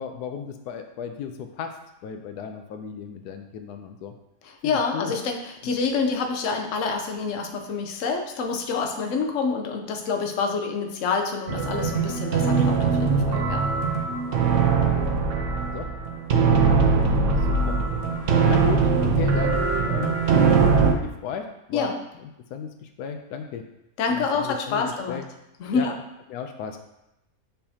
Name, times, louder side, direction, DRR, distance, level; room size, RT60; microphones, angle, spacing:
voice 1, 0.0-1.8 2.0-4.1 4.6-5.1 5.6-5.7 14.9-15.2 15.7-15.9 17.5-17.8 18.4-21.9 22.5-23.6 24.1-25.2 25.7-25.9 26.3-26.8, left 7 dB, 90° left, 6 dB, 1.2 m, -34 dB
voice 2, 4.4-13.6 21.7-22.0 24.0-25.2 25.6-26.0, left 5 dB, 60° left, 4 dB, 1.0 m, -27 dB
sound 1, 11.5-20.9, right 5 dB, 60° right, 1.0 m, -21 dB
6.7 x 5.5 x 2.8 m, 0.88 s
omnidirectional pair, 1.6 m